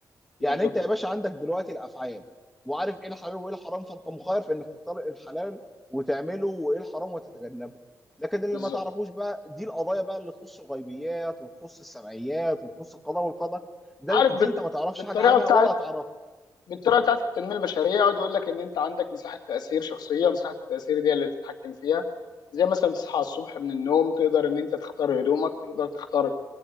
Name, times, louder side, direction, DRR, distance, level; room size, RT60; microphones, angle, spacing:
voice 1, 0.4-2.2 2.7-5.6 5.9-7.8 8.2-13.6 14.0-16.0, equal, ahead, 6 dB, 1.9 m, -30 dB
voice 2, 14.1-14.5 15.1-15.7 16.7-22.0 22.5-26.3, left 7 dB, 85° left, 6 dB, 2.1 m, -25 dB
23.0 x 17.5 x 9.4 m, 1.3 s
wide cardioid pair, 115°, 7 cm